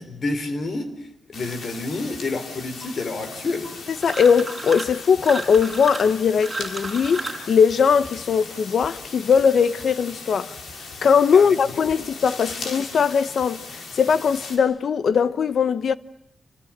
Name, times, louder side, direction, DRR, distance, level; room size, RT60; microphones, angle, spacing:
voice 1, 0.0-3.7 11.3-11.6 11.9-12.0 12.5-12.7, left 3 dB, 45° left, 4.0 m, -29 dB
sound 1, 1.3-14.6, left 3 dB, 80° left, 5.8 m, -38 dB
voice 2, 4.0-10.5 11.0-16.0, left 6 dB, 65° left, 1.0 m, -20 dB
sound 2, 4.0-5.0 5.2-7.5, right 3 dB, 15° right, 5.8 m, -32 dB
29.0 x 26.0 x 7.4 m
wide cardioid pair, 165°, 0 cm